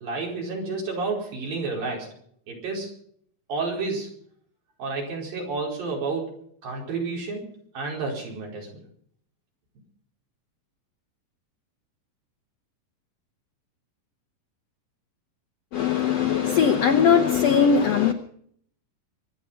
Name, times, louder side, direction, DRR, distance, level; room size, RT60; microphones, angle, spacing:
voice 1, 0.0-2.1 2.5-2.9 3.5-4.1 4.8-7.5 7.7-8.8, right 3 dB, 80° right, -1 dB, 6.5 m, -30 dB
voice 2, 15.7-18.1, left 7 dB, 75° left, 7 dB, 1.5 m, -20 dB
24.0 x 10.0 x 5.6 m, 0.63 s
omnidirectional pair, 4.0 m